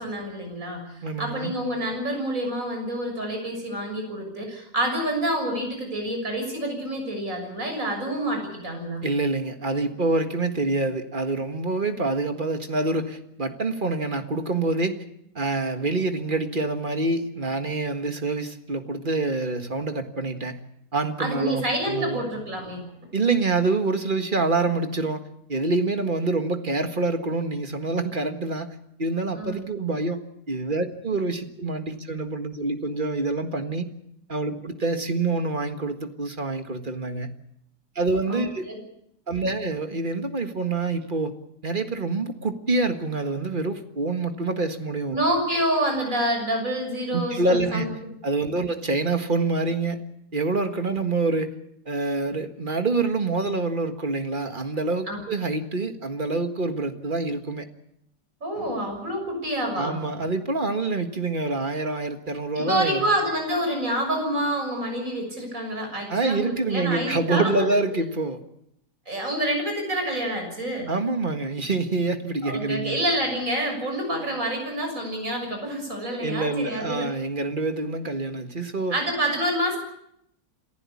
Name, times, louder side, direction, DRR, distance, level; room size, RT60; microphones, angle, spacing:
voice 1, 0.0-9.1 21.2-22.9 29.3-29.6 38.3-38.8 45.1-47.9 55.1-55.2 58.4-60.0 62.5-67.8 69.1-70.9 72.4-77.1 78.9-79.8, right 1 dB, 50° right, 3 dB, 7.2 m, -27 dB
voice 2, 1.0-1.5 9.0-14.9 15.3-20.6 20.9-22.3 23.1-25.2 25.5-30.2 30.5-33.9 34.3-37.3 37.9-38.7 39.3-41.3 41.6-45.2 47.1-47.9 48.2-50.0 50.3-51.5 51.8-57.7 59.7-63.1 66.1-68.4 70.9-73.0 76.2-78.9, right 3 dB, 30° right, 7 dB, 1.7 m, -26 dB
28.0 x 15.0 x 8.5 m, 0.78 s
omnidirectional pair, 1.8 m